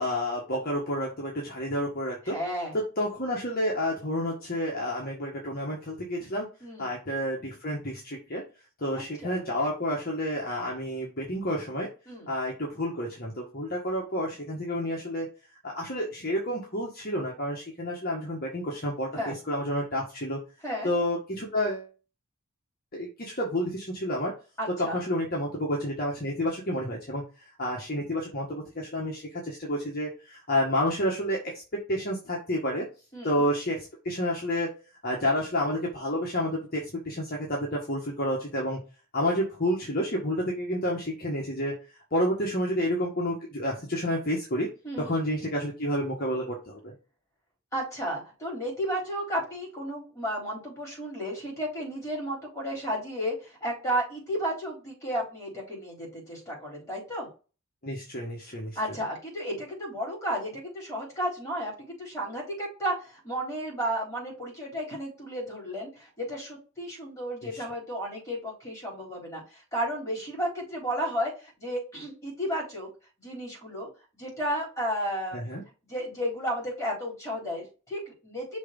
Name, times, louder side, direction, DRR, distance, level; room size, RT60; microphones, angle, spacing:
voice 1, 0.0-2.4 2.7-6.5 6.8-8.4 8.8-11.9 12.3-15.3 15.6-20.4 20.8-21.9 22.9-24.3 24.8-27.2 27.6-32.9 33.2-34.7 35.0-38.8 39.1-41.7 42.1-44.7 45.0-46.9 57.8-59.0 75.3-75.6, equal, 45° left, -2 dB, 1.5 m, -30 dB
voice 2, 2.2-2.7 6.6-6.9 9.2-9.4 12.1-12.3 19.1-19.4 20.6-20.9 24.6-25.0 33.1-33.4 44.8-45.1 47.7-57.3 58.8-72.9 73.2-73.9 74.1-75.5 75.9-78.6, equal, 15° left, -3 dB, 4.1 m, -33 dB
6.2 x 3.5 x 5.3 m, 0.33 s
head